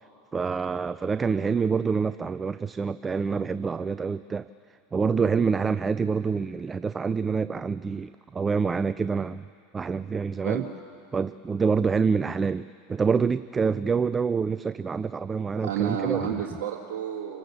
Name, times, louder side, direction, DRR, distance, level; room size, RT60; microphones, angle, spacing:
voice 1, 0.3-4.5 4.9-9.4 9.7-10.6 11.1-16.3, right 5 dB, 20° right, 15 dB, 0.4 m, -26 dB
voice 2, 15.6-17.4, right 9 dB, 65° right, -1 dB, 1.8 m, -30 dB
28.5 x 16.0 x 7.2 m, 2.5 s
hypercardioid pair, 90°, 0 cm